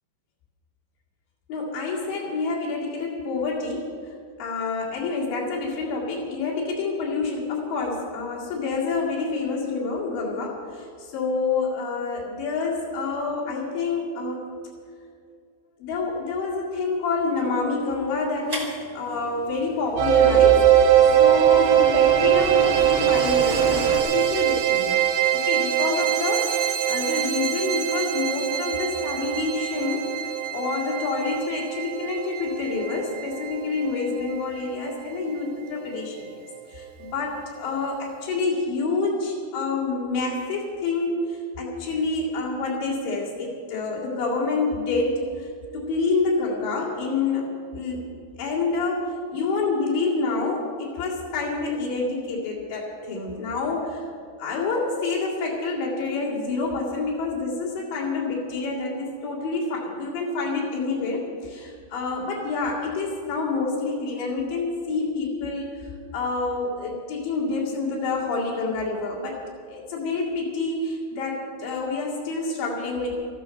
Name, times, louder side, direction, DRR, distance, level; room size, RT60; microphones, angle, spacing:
voice 1, 1.5-14.5 15.8-25.0 25.3-36.4 36.7-48.1 48.4-54.1 54.4-73.1, left 3 dB, 80° left, -5 dB, 4.5 m, -28 dB
sound 1, 18.5-24.0, equal, 30° right, 0.5 m, -33 dB
sound 2, 20.0-34.9, right 11 dB, 80° right, 3.3 m, -22 dB
13.5 x 12.5 x 6.4 m, 2.3 s
omnidirectional pair, 5.0 m